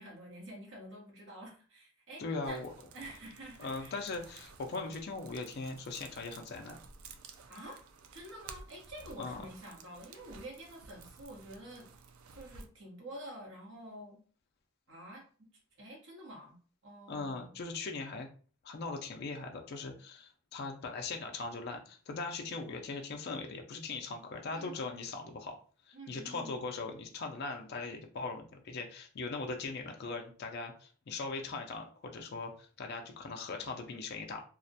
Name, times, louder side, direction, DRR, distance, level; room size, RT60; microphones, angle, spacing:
voice 1, 0.0-2.6 2.9-3.9 7.5-7.8 8.1-11.9 12.3-14.2 14.9-15.2 15.8-16.6 16.8-17.6 24.5-25.0 25.9-26.6, right 1 dB, 60° right, -3 dB, 1.0 m, -48 dB
voice 2, 2.2-2.7 3.6-6.8 9.2-9.4 17.1-18.3 18.6-25.6 25.8-34.4, left 3 dB, 50° left, 3 dB, 0.3 m, -40 dB
sound 1, 2.4-12.7, right 4 dB, 80° right, 0.3 m, -54 dB
2.3 x 2.1 x 2.6 m, 0.41 s
head